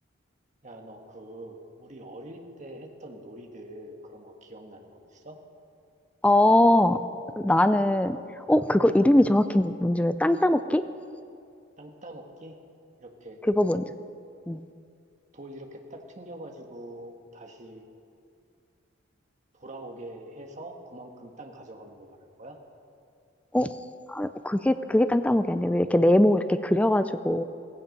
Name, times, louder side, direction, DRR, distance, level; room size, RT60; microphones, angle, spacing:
voice 1, 0.6-5.4 11.8-12.6 13.0-13.4 15.3-17.8 19.5-22.6, right 1 dB, 35° right, 2 dB, 1.5 m, -44 dB
voice 2, 6.2-7.0 7.4-8.2 8.5-10.8 13.5-13.8 14.5-14.6 23.5-23.7 24.1-27.4, left 1 dB, 5° left, 11 dB, 0.3 m, -21 dB
16.0 x 15.5 x 5.3 m, 2.4 s
head